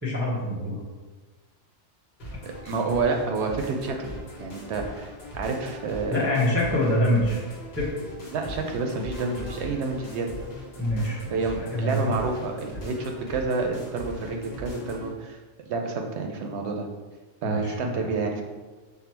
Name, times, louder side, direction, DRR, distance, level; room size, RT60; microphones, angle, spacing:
voice 1, 0.0-0.8 6.1-7.4 7.8-8.0 10.8-12.2 17.4-18.0, left 1 dB, 10° right, -8 dB, 0.8 m, -25 dB
sound 1, 2.2-15.1, equal, 55° left, 1.2 m, -40 dB
voice 2, 2.4-4.1 4.4-6.2 8.3-10.3 11.3-16.9 17.4-18.4, right 3 dB, 70° right, 3 dB, 0.8 m, -29 dB
5.6 x 2.0 x 4.4 m, 1.3 s
omnidirectional pair, 1.3 m